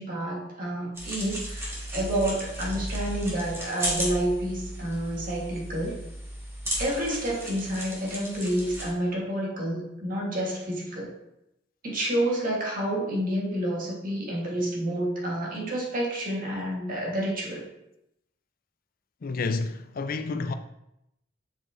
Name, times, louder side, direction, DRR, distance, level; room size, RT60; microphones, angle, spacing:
voice 1, 0.0-6.0 6.8-11.1 11.8-17.6, right 1 dB, 50° right, 1.9 m, -29 dB
sound 1, 0.9-8.9, equal, 15° right, 1.8 m, -35 dB
voice 2, 19.2-20.5, left 3 dB, 50° left, 0.4 m, -29 dB
7.2 x 4.9 x 3.9 m
head